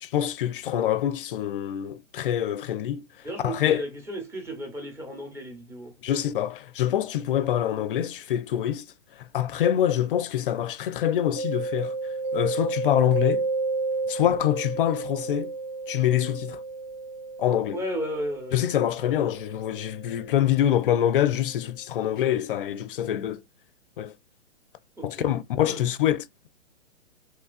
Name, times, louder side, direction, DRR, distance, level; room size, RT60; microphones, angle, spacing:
voice 1, 0.0-3.0 3.4-3.8 6.0-8.8 9.2-11.9 12.3-13.5 14.1-15.5 15.9-16.6 17.4-17.8 18.5-23.4 24.0-24.1 25.0-26.2, left 11 dB, 50° left, 0.5 m, -25 dB
voice 2, 3.2-5.9 17.7-18.6 25.0-25.2 25.6-25.8, equal, 5° right, 0.8 m, -34 dB
Mallet percussion, 11.4-20.9, right 3 dB, 25° right, 0.4 m, -32 dB
3.2 x 2.3 x 2.4 m
hypercardioid pair, 125°, 36 cm